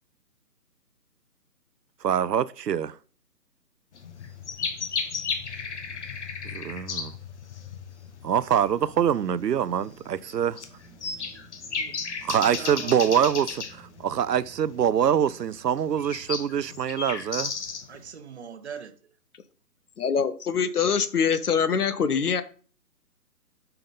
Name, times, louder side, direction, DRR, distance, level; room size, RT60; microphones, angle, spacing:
voice 1, 2.0-3.0 6.5-7.2 8.2-10.6 12.2-17.5, right 9 dB, 90° right, 0.6 m, -24 dB
sound 1, 3.9-18.1, left 5 dB, 45° left, 1.0 m, -35 dB
sound 2, 8.6-15.4, right 1 dB, ahead, 3.2 m, -52 dB
voice 2, 12.6-13.3 17.9-18.9, right 6 dB, 45° right, 0.8 m, -41 dB
voice 3, 20.0-22.4, left 6 dB, 70° left, 1.0 m, -24 dB
6.7 x 5.8 x 4.1 m
figure-of-eight pair, 150°, 48 cm